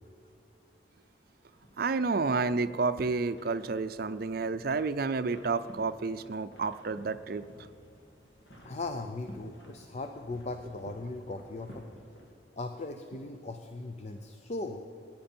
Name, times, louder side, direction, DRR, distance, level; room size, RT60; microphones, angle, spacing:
sound 1, 1.5-12.3, equal, 70° left, 2.4 m, -55 dB
voice 1, 1.8-7.5, right 4 dB, 55° right, 12 dB, 0.5 m, -30 dB
voice 2, 8.6-11.8 12.6-14.8, left 2 dB, 35° left, 6 dB, 0.6 m, -38 dB
19.0 x 10.0 x 4.4 m, 2.7 s
head